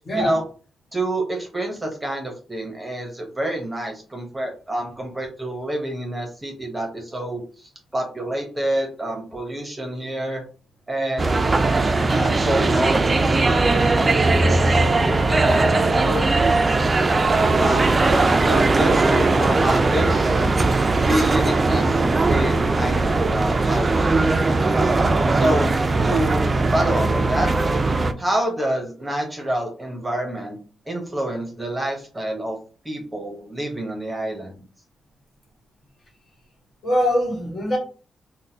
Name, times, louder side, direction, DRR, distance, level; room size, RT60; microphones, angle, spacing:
voice 1, 0.0-0.4 36.8-37.8, equal, 45° left, 1.4 m, -22 dB
voice 2, 0.9-10.4 10.9-11.3 12.1-15.7 16.0-16.3 17.5-20.5 21.0-24.9 25.3-25.7 26.0-27.5 28.2-30.6 30.9-32.6 32.8-34.6, right 1 dB, 15° right, 0.9 m, -27 dB
sound 1, 11.2-28.1, right 3 dB, 30° right, 0.3 m, -19 dB
3.8 x 2.1 x 2.8 m
cardioid pair, 80°, 0 cm